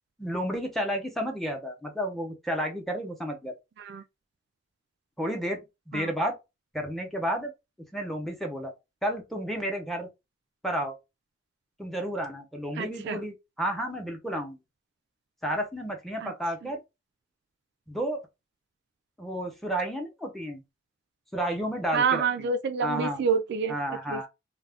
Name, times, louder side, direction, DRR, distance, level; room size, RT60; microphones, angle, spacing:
voice 1, 0.2-3.5 5.2-5.6 5.9-6.3 6.7-7.5 7.9-8.7 9.0-10.1 10.6-11.0 11.8-14.6 15.4-16.8 17.9-18.2 19.2-20.6 21.3-22.2 22.8-23.2 23.7-24.3, equal, ahead, 0.7 m, -31 dB
voice 2, 12.8-13.2 16.2-16.3 16.6-16.7 21.9-24.3, right 5 dB, 65° right, 0.3 m, -28 dB
2.3 x 2.2 x 3.4 m
head